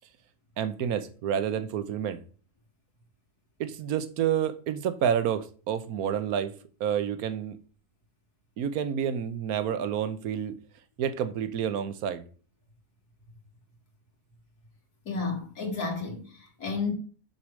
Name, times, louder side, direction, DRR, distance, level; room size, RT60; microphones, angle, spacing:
voice 1, 0.6-2.2 3.6-6.5 6.8-7.6 8.6-10.5 11.0-12.2, right 8 dB, 75° right, 1.3 m, -29 dB
voice 2, 15.1-16.9, left 4 dB, 80° left, 2.7 m, -32 dB
7.1 x 4.9 x 6.2 m
omnidirectional pair, 1.6 m